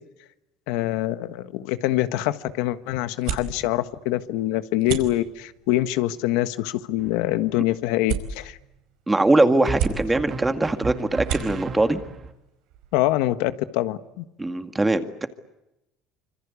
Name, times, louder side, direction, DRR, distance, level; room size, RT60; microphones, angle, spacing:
voice 1, 0.7-8.6 11.5-11.6 12.9-14.2, left 15 dB, 80° left, 12 dB, 1.4 m, -25 dB
sound 1, 1.8-13.4, right 9 dB, 75° right, 5.1 m, -36 dB
sound 2, 7.0-7.6 9.6-12.3, right 5 dB, 35° right, 2.8 m, -35 dB
voice 2, 9.1-12.0 14.4-15.3, right 2 dB, 10° right, 8 dB, 2.0 m, -21 dB
26.5 x 25.0 x 8.4 m, 0.91 s
cardioid pair, 125°, 0 cm